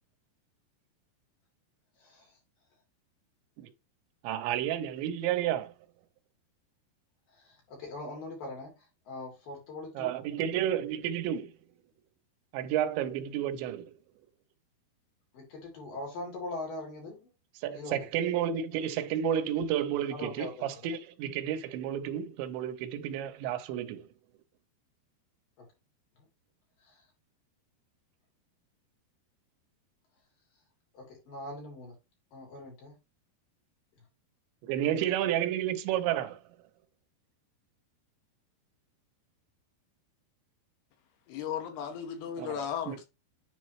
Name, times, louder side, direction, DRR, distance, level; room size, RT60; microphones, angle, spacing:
voice 1, 4.2-5.7 10.0-11.5 12.5-13.9 17.6-24.0 34.6-36.4 42.4-42.5 42.9-43.0, right 10 dB, 90° right, 3.1 m, -31 dB
voice 2, 7.3-10.2 15.3-17.3 17.7-18.1 20.1-20.9 25.6-25.7 26.2-26.3 26.8-27.0 30.9-32.0 32.3-33.0, left 2 dB, 55° left, 4.7 m, -42 dB
voice 3, 41.3-43.0, left 8 dB, 80° left, 2.9 m, -35 dB
9.9 x 4.1 x 3.1 m
omnidirectional pair, 5.0 m